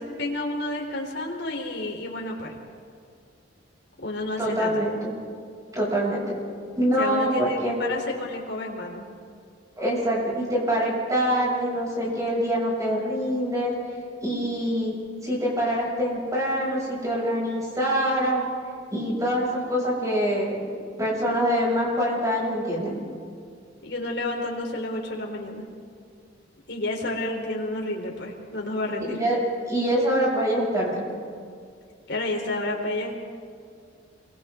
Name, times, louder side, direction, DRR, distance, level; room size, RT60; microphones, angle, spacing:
voice 1, 0.0-2.6 4.0-4.9 7.0-9.1 23.8-25.7 26.7-29.2 32.1-33.2, left 2 dB, 60° left, 0 dB, 3.8 m, -30 dB
voice 2, 4.4-5.1 5.7-6.3 6.8-7.7 9.8-13.7 14.2-14.9 15.2-18.4 18.9-20.7 21.0-23.0 29.0-29.4 29.7-31.0, equal, 20° right, -5 dB, 7.0 m, -25 dB
28.5 x 24.5 x 3.8 m, 2.2 s
head